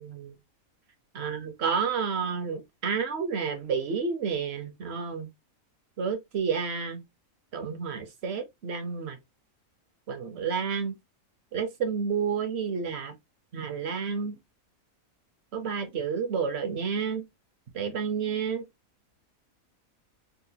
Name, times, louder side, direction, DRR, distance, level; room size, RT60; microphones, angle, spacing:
voice 1, 1.1-5.3 6.0-7.0 7.5-9.2 10.1-11.0 11.5-13.1 13.5-14.3 15.5-17.2 17.7-18.6, right 6 dB, 60° right, 0.8 m, -30 dB
3.8 x 2.1 x 2.7 m
omnidirectional pair, 1.5 m